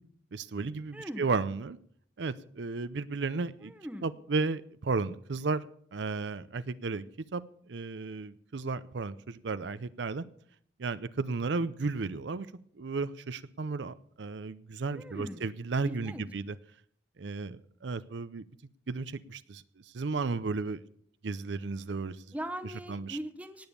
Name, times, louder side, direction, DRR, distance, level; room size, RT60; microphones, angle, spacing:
voice 1, 0.3-1.8 2.2-3.7 4.0-7.0 7.3-7.4 7.7-10.2 10.8-12.5 12.8-16.5 17.2-18.4 18.9-19.6 19.9-20.8 21.2-22.2 22.6-23.2, right 4 dB, 70° right, 15 dB, 0.6 m, -34 dB
voice 2, 0.9-1.3 3.6-4.1 14.9-15.5 15.8-16.2 22.3-23.7, equal, 10° right, 8 dB, 0.9 m, -40 dB
18.5 x 7.1 x 7.0 m, 0.63 s
head